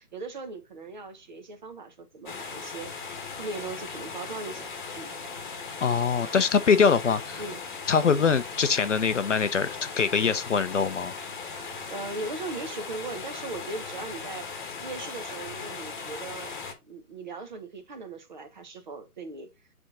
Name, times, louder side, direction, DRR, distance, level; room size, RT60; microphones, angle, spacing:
voice 1, 0.0-5.2 7.4-7.6 8.0-8.2 11.6-16.6 16.8-19.5, right 3 dB, 30° right, 1.0 m, -39 dB
sound 1, 2.3-16.7, left 5 dB, 30° left, 1.2 m, -38 dB
voice 2, 5.8-7.4 7.9-11.2, left 6 dB, 55° left, 0.6 m, -23 dB
7.7 x 3.6 x 4.0 m
figure-of-eight pair, 150°, 46 cm